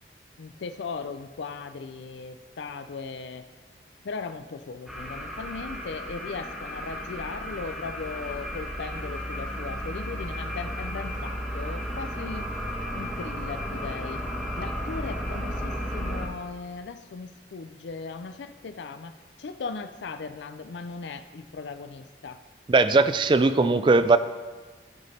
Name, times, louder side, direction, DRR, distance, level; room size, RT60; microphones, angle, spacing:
voice 1, 0.4-3.5 4.0-12.5 12.9-14.2 14.6-19.1 19.4-22.4, left 4 dB, 80° left, 10 dB, 0.4 m, -38 dB
sound 1, 4.9-16.3, equal, ahead, 1.5 m, -34 dB
voice 2, 22.7-24.2, right 3 dB, 25° right, 12 dB, 0.3 m, -19 dB
14.5 x 5.1 x 4.2 m, 1.4 s
head